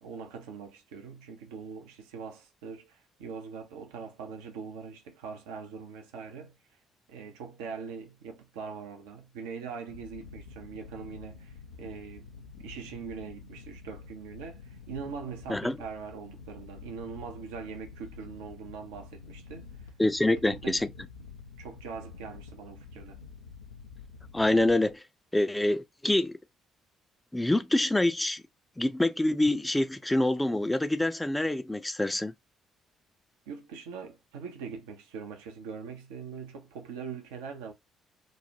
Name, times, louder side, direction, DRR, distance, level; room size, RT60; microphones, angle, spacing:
voice 1, 0.0-6.6 7.1-12.3 12.6-19.9 20.3-20.8 21.6-23.2 33.5-37.7, right 6 dB, 70° right, 0.6 m, -42 dB
sound 1, 9.9-24.9, left 5 dB, 80° left, 0.5 m, -48 dB
voice 2, 20.0-20.9 24.3-25.0 25.3-26.4 27.3-28.4 28.8-32.3, left 1 dB, 10° left, 0.4 m, -26 dB
3.1 x 2.1 x 2.6 m
figure-of-eight pair, 45°, 0 cm